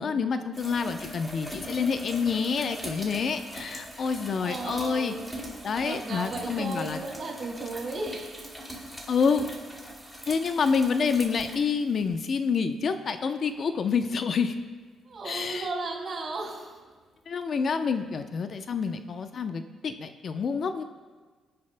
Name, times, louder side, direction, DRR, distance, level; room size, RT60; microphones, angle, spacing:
voice 1, 0.0-5.1 5.6-7.0 9.1-9.5 10.2-14.5 15.2-15.7 17.3-20.8, left 5 dB, 50° left, 8 dB, 0.6 m, -28 dB
sound 1, 0.5-12.4 13.9-14.0 18.8-18.9, equal, 5° left, 2.6 m, -41 dB
voice 2, 4.4-8.3 15.1-16.8, right 3 dB, 45° right, -2 dB, 3.9 m, -35 dB
21.5 x 10.5 x 2.2 m, 1.4 s
cardioid pair, 90°, 0 cm